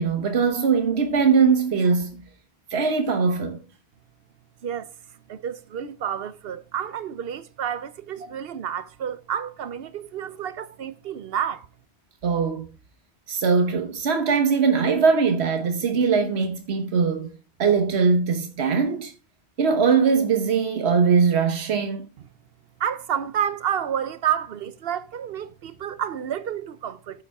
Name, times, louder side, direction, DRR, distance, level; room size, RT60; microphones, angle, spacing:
voice 1, 0.0-2.2 2.7-3.6 12.2-12.7 13.3-17.3 17.6-19.1 19.6-22.0, right 5 dB, 85° right, 1.3 m, -21 dB
voice 2, 5.3-11.7 22.8-27.2, right 9 dB, 70° right, 0.9 m, -30 dB
10.0 x 7.2 x 3.5 m
omnidirectional pair, 1.1 m